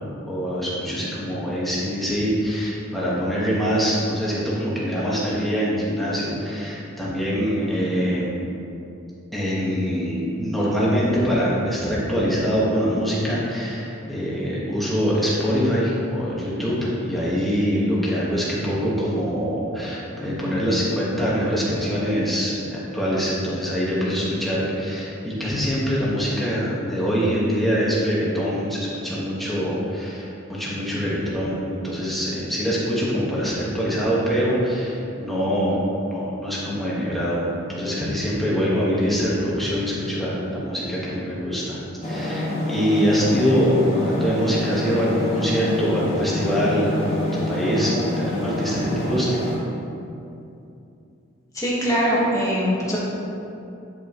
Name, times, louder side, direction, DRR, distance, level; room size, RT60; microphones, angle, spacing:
voice 1, 0.0-8.3 9.3-35.8 36.1-41.8 42.0-46.9 47.3-49.4, equal, ahead, -8 dB, 1.5 m, -24 dB
sound 1, 42.0-49.6, left 1 dB, 30° left, 1.7 m, -27 dB
voice 2, 51.5-53.0, equal, 15° left, -6 dB, 1.6 m, -22 dB
10.0 x 5.5 x 3.1 m, 2.7 s
head